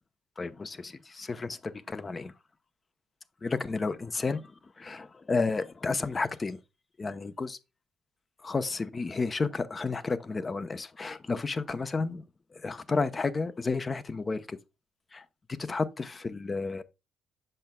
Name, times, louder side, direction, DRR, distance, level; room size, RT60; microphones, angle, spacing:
voice 1, 0.4-2.3 3.4-4.5 4.8-6.6 7.0-7.6 8.4-12.2 12.5-14.6 15.1-16.8, left 4 dB, 35° left, 0.8 m, -32 dB
7.8 x 6.4 x 2.2 m
hypercardioid pair, 45°, 0 cm